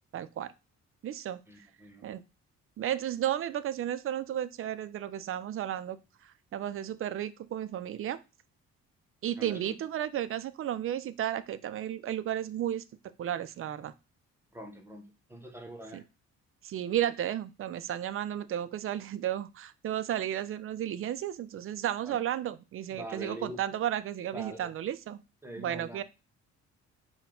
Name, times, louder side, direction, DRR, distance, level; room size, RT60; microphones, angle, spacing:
voice 1, 0.1-0.5 1.0-1.4 2.0-2.2 2.8-8.2 9.2-12.8 13.2-13.9 15.9-16.0 16.6-25.2 25.6-26.0, right 11 dB, 45° right, 14 dB, 0.4 m, -33 dB
voice 2, 1.5-2.1 9.4-9.8 14.5-16.0 22.1-22.2 22.9-23.6 24.3-24.7 25.4-26.0, right 1 dB, 10° right, 3 dB, 0.9 m, -44 dB
4.6 x 2.2 x 3.6 m, 0.28 s
cardioid pair, 90°, 30 cm